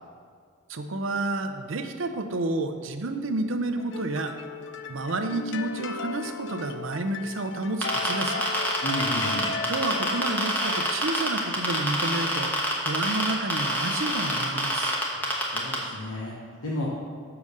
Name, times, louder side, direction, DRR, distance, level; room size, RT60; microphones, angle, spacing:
voice 1, 0.7-4.4 4.9-8.5 9.6-12.6 12.8-15.0, right 2 dB, 65° right, 7 dB, 0.6 m, -30 dB
sound 1, 3.8-11.0, left 4 dB, 60° left, 0.4 m, -36 dB
sound 2, 7.8-15.8, equal, 10° left, 1.1 m, -26 dB
voice 2, 8.8-9.5 15.4-16.9, left 1 dB, 80° left, -5 dB, 1.1 m, -33 dB
6.9 x 4.9 x 6.5 m, 2.1 s
head